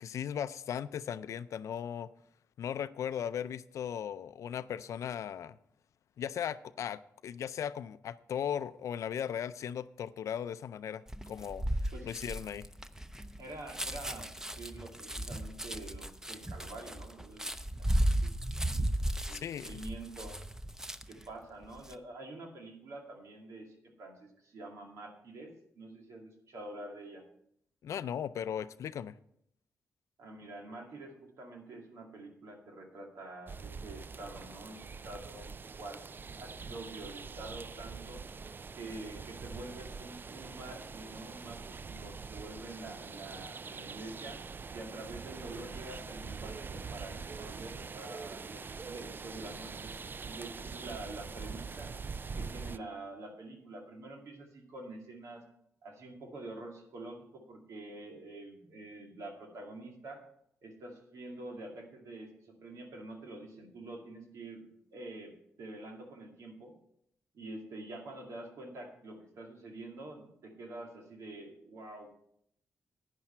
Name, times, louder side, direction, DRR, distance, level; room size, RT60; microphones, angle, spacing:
voice 1, 0.0-2.1 2.6-5.6 6.2-11.7 12.0-12.7 19.3-19.8 27.8-29.1, left 9 dB, 75° left, 15 dB, 0.4 m, -37 dB
sound 1, 11.1-21.2 21.6-21.9, right 1 dB, 10° right, 0.7 m, -35 dB
voice 2, 13.4-17.6 18.2-18.6 19.2-20.4 21.1-25.5 25.8-27.2 30.2-35.5 35.8-36.0 36.4-38.2 38.7-44.4 44.7-49.9 50.3-51.9 52.4-55.4 55.8-60.2 60.6-65.3 65.6-66.7 67.3-72.1, right 2 dB, 80° right, 2 dB, 2.3 m, -47 dB
sound 2, 33.5-52.8, right 5 dB, 40° right, 0.4 m, -44 dB
11.0 x 9.8 x 4.4 m, 0.72 s
cardioid pair, 60°, 5 cm